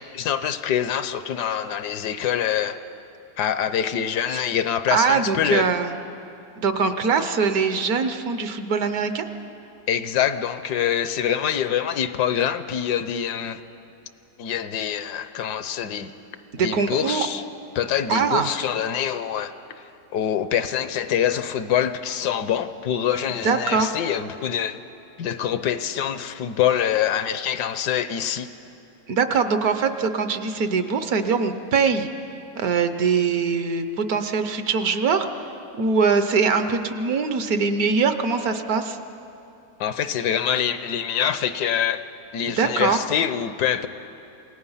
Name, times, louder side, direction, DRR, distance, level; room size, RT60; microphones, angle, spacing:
voice 1, 0.0-2.8 3.4-5.7 9.9-13.6 14.4-16.1 16.6-17.4 17.7-19.5 20.1-24.8 25.2-28.5 39.8-42.0 42.3-43.9, left 9 dB, 75° left, 12 dB, 1.3 m, -25 dB
voice 2, 4.9-5.9 6.6-9.2 16.5-17.3 18.1-18.5 23.4-23.9 29.1-32.1 32.6-35.3 35.8-39.0 42.5-43.0, right 5 dB, 65° right, 9 dB, 1.3 m, -22 dB
28.0 x 17.5 x 5.6 m, 2.8 s
omnidirectional pair, 1.8 m